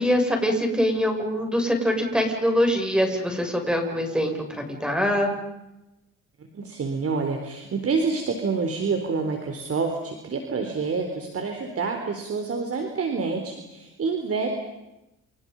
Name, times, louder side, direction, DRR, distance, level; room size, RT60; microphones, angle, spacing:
voice 1, 0.0-5.3, equal, 5° right, 3 dB, 7.2 m, -23 dB
voice 2, 6.5-14.5, right 4 dB, 50° right, 4 dB, 4.1 m, -27 dB
29.0 x 29.0 x 5.5 m, 0.93 s
cardioid pair, 90°, 30 cm